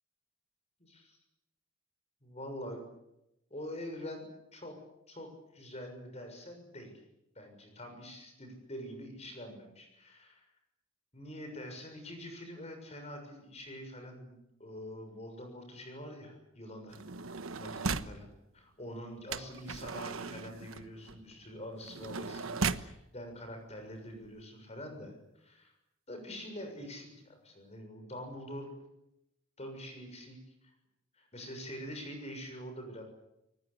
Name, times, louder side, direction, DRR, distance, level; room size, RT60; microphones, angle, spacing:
voice 1, 0.8-1.2 2.2-2.8 3.5-4.2 4.5-4.7 5.1-7.0 7.3-10.4 11.1-17.0 17.6-18.3 18.5-25.7 26.1-28.7 29.6-30.7 31.1-33.0, equal, 30° left, 5 dB, 6.7 m, -45 dB
sound 1, 16.9-18.2 19.3-22.9 23.8-23.9 24.1-24.4, right 4 dB, 90° right, 1.2 m, -37 dB
29.0 x 20.0 x 8.5 m, 0.86 s
head